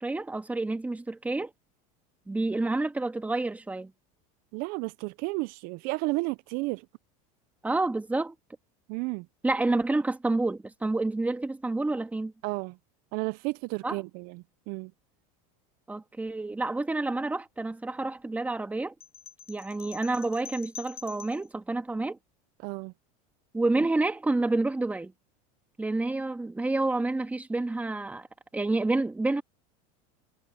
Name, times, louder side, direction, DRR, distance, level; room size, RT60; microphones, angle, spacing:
voice 1, 0.0-1.5 2.3-3.9 7.6-8.3 9.4-12.3 13.8-14.0 15.9-18.9 19.5-22.2 23.5-25.1 25.8-28.3 28.5-29.4, right 2 dB, 10° right, 1.6 m, -29 dB
voice 2, 4.5-6.8 8.9-9.3 12.4-12.8 13.1-14.9 22.6-22.9, right 25 dB, 55° right, 0.5 m, -32 dB
sound 1, 19.0-21.5, left 7 dB, 35° left, 6.6 m, -46 dB
supercardioid pair, 130°, 18 cm